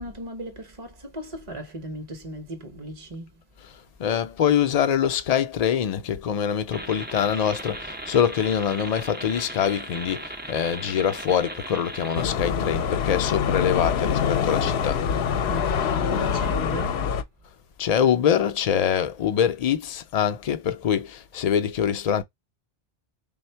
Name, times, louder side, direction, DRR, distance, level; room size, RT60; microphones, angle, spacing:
voice 1, 0.0-3.3 15.5-17.1, right 1 dB, 35° right, 0.7 m, -36 dB
voice 2, 4.0-15.0 17.8-22.2, left 8 dB, 55° left, 0.5 m, -24 dB
sound 1, 6.7-12.2, right 1 dB, 20° right, 0.3 m, -37 dB
sound 2, 12.2-17.2, left 7 dB, 80° left, 0.8 m, -25 dB
3.4 x 2.1 x 4.3 m
omnidirectional pair, 1.1 m